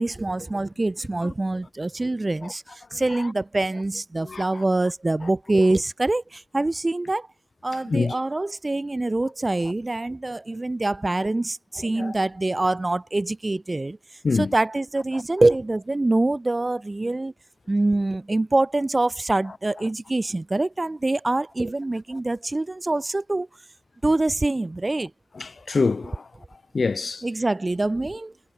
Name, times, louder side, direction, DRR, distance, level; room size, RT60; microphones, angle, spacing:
voice 1, 0.0-7.3 7.6-14.0 14.3-17.3 17.7-23.5 24.0-25.1 27.2-28.5, right 2 dB, 25° right, 6.3 m, -25 dB
voice 2, 2.9-3.3 4.2-4.4 5.2-5.3 7.9-8.2 11.9-12.1 14.2-14.5 25.4-26.2 26.7-27.2, left 4 dB, 45° left, 4.4 m, -26 dB
cardioid pair, 70°, 0 cm